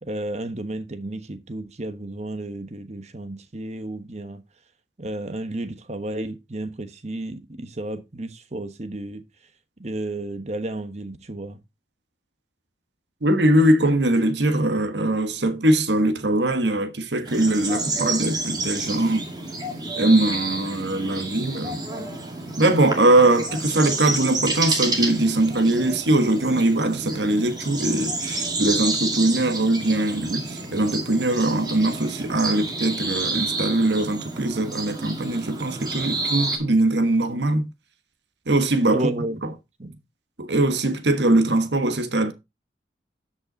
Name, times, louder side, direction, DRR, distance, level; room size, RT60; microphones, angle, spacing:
voice 1, 0.0-4.4 5.0-9.2 9.8-11.6 38.9-39.4 39.8-40.0, right 1 dB, 40° right, 1.2 m, -32 dB
voice 2, 13.2-19.3 20.0-21.8 22.6-37.7 38.5-39.1 40.4-42.3, right 1 dB, 75° right, 1.3 m, -21 dB
sound 1, 17.2-36.6, right 2 dB, 25° right, 2.2 m, -29 dB
12.5 x 5.6 x 3.9 m
head